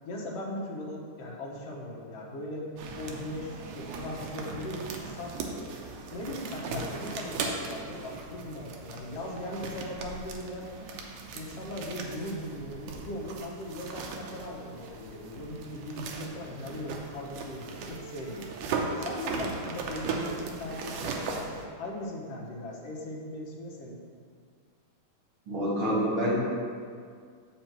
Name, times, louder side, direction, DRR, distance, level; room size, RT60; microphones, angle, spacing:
voice 1, 0.1-2.7 3.0-5.4 6.1-10.7 11.3-18.5 19.0-21.5 21.8-24.0, left 1 dB, 60° left, -3 dB, 1.8 m, -38 dB
sound 1, 2.8-21.7, right 4 dB, 80° right, 2.2 m, -38 dB
voice 2, 25.5-26.4, equal, 45° right, -8 dB, 2.1 m, -27 dB
7.4 x 5.4 x 4.5 m, 2.1 s
omnidirectional pair, 3.7 m